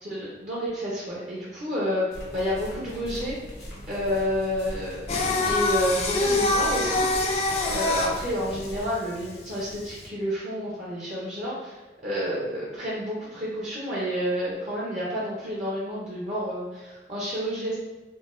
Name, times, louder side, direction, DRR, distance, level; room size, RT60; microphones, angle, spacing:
voice 1, 0.0-2.1 2.3-3.4 3.9-7.1 7.4-17.8, equal, 40° right, -6 dB, 0.5 m, -30 dB
sound 1, 2.1-8.9, equal, 75° left, 0.8 m, -40 dB
Singing, 5.1-10.0, left 2 dB, 35° left, 0.3 m, -25 dB
3.8 x 2.1 x 2.4 m, 1.2 s
head